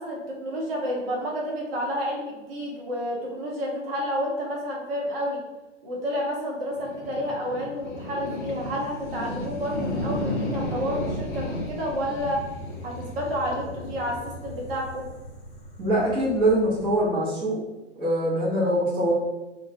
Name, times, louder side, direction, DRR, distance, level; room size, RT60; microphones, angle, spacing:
voice 1, 0.0-5.4 5.8-12.4 12.8-15.0, equal, 50° right, -3 dB, 0.8 m, -30 dB
sound 1, 6.7-17.1, left 1 dB, 40° left, 0.6 m, -34 dB
voice 2, 15.8-17.6 18.0-19.1, right 1 dB, 15° right, -9 dB, 0.7 m, -23 dB
2.2 x 2.2 x 2.7 m, 1.1 s
hypercardioid pair, 130°, 37 cm